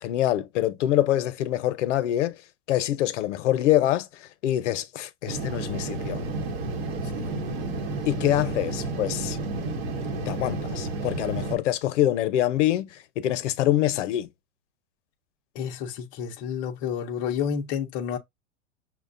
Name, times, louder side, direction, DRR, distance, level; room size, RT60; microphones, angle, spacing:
voice 1, 0.0-2.4 2.7-6.2 8.1-9.4 10.3-14.3, left 13 dB, 65° left, 0.7 m, -25 dB
sound 1, 5.2-11.6, right 3 dB, 55° right, 1.0 m, -31 dB
voice 2, 15.5-18.2, left 8 dB, 25° left, 0.5 m, -30 dB
6.1 x 2.2 x 2.4 m
supercardioid pair, 150°, 38 cm